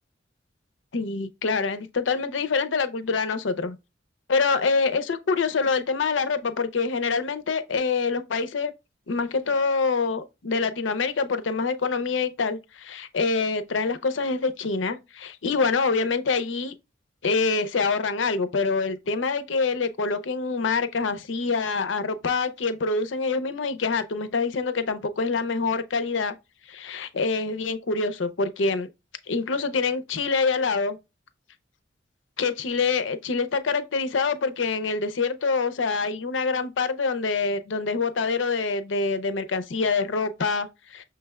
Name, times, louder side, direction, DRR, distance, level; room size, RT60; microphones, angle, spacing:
voice 1, 0.9-3.8 4.3-8.7 9.1-16.7 17.2-26.3 26.7-28.9 29.3-31.0 32.4-41.0, left 4 dB, 85° left, 0.6 m, -25 dB
6.1 x 3.3 x 2.3 m
head